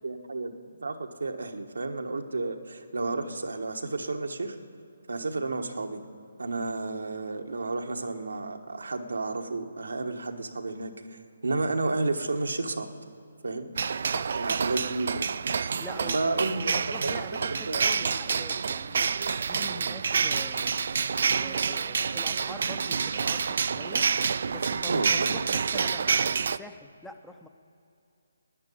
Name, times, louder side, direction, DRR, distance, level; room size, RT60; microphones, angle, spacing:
voice 1, 0.0-0.5 0.8-4.6 5.1-6.0 6.4-12.9 13.4-13.7 14.3-15.3 16.1-16.7 17.0-17.2 17.5-18.2 24.9-25.3, right 3 dB, 85° right, 4 dB, 1.3 m, -31 dB
sound 1, 13.8-26.6, right 6 dB, 60° right, 0.4 m, -28 dB
voice 2, 14.1-14.6 15.8-19.0 19.4-20.9 21.4-24.1 24.4-27.5, left 2 dB, 5° left, 7 dB, 0.6 m, -45 dB
11.0 x 9.9 x 8.5 m, 2.6 s
hypercardioid pair, 155°, 0 cm